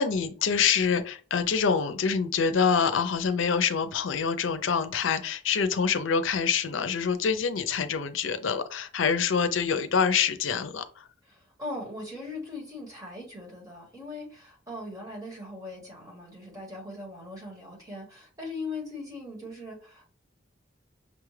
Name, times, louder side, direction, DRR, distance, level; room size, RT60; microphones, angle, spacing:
voice 1, 0.0-11.1, left 6 dB, 85° left, 0.5 m, -26 dB
voice 2, 11.2-20.0, left 2 dB, 20° right, 1.4 m, -40 dB
6.2 x 2.4 x 3.2 m
head